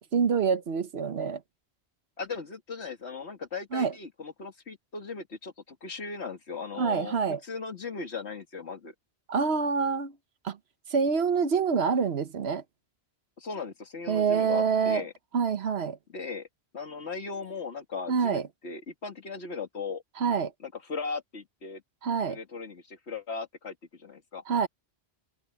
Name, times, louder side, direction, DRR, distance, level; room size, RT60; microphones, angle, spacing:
voice 1, 0.1-1.4 3.7-3.9 6.8-7.4 9.3-10.1 10.4-10.6 10.9-12.6 14.1-15.0 15.3-16.0 18.1-18.5 20.2-20.5 22.0-22.4 24.5-24.7, right 6 dB, 75° right, 1.2 m, -26 dB
voice 2, 2.2-7.2 7.4-8.9 13.4-15.1 16.1-16.5 16.7-20.0 20.6-21.8 22.3-24.4, left 4 dB, 85° left, 2.3 m, -38 dB
omnidirectional pair, 1.1 m